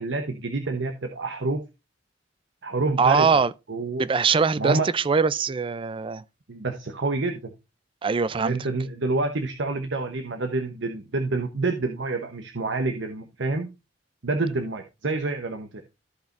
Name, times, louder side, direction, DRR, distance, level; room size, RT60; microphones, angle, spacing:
voice 1, 0.0-1.6 2.6-3.4 3.7-4.1 4.6-4.9 6.5-7.5 8.4-13.7 14.2-15.8, right 3 dB, 70° right, 1.0 m, -28 dB
voice 2, 3.0-3.5 4.0-6.2 8.0-8.6, right 5 dB, 30° right, 0.4 m, -22 dB
14.5 x 5.2 x 2.5 m
head